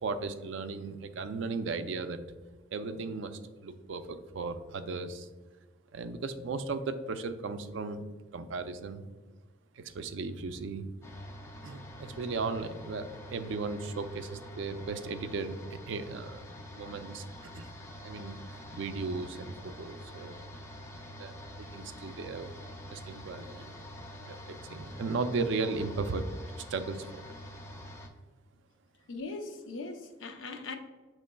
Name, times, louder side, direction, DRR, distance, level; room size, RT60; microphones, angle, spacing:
voice 1, 0.0-2.2 2.7-5.3 5.9-8.0 8.3-9.1 9.8-10.9 11.6-15.6 15.9-17.7 18.0-18.3 18.7-20.4 21.2-22.5 22.9-23.7 24.2-27.2, right 4 dB, 65° right, 0.4 m, -36 dB
sound 1, 11.0-28.1, equal, 15° left, 0.4 m, -46 dB
voice 2, 29.1-30.7, left 3 dB, 70° left, 0.6 m, -40 dB
7.6 x 3.1 x 2.2 m
head